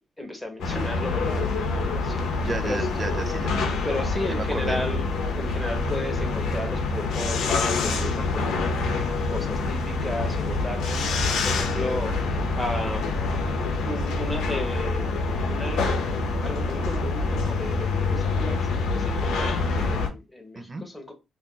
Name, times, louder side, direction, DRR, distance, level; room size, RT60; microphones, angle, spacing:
voice 1, 0.2-2.3 2.6-2.9 3.8-5.1 5.3-8.7 9.3-12.1 12.6-13.2 13.8-15.1 15.5-15.9 16.4-21.1, left 1 dB, 5° left, 1.1 m, -34 dB
sound 1, 0.6-20.1, left 3 dB, 80° left, 0.7 m, -26 dB
voice 2, 2.3-3.6 4.3-4.8 20.6-20.8, right 3 dB, 30° right, 0.5 m, -33 dB
2.5 x 2.5 x 3.8 m
cardioid pair, 90°, 0 cm